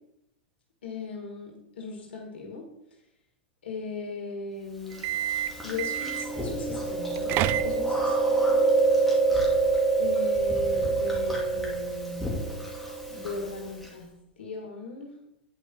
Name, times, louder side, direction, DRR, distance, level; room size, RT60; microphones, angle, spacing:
voice 1, 0.8-2.6 3.6-5.1 5.6-8.7 10.0-12.3 13.1-14.1 14.4-15.1, left 4 dB, 75° left, 1 dB, 2.0 m, -38 dB
Chewing mastication, 4.9-13.9, right 3 dB, ahead, 2.3 m, -26 dB
sound 1, 4.9-6.4 7.0-8.1, right 12 dB, 40° right, 0.4 m, -30 dB
9.1 x 5.2 x 4.5 m, 0.78 s
hypercardioid pair, 105°, 6 cm